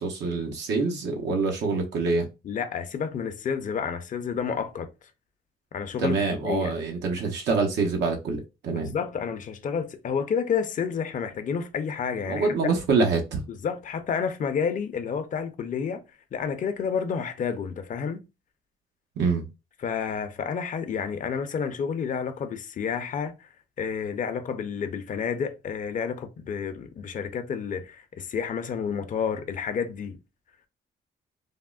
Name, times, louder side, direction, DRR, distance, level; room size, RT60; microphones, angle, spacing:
voice 1, 0.0-2.2 6.0-8.9 12.3-13.4 19.2-19.5, right 4 dB, 85° right, 0.7 m, -25 dB
voice 2, 2.4-4.9 5.7-6.8 8.7-12.7 13.5-16.0 16.3-18.2 19.8-23.5 23.8-30.2, left 6 dB, 50° left, 0.5 m, -30 dB
3.5 x 2.0 x 2.3 m
cardioid pair, 85°, 17 cm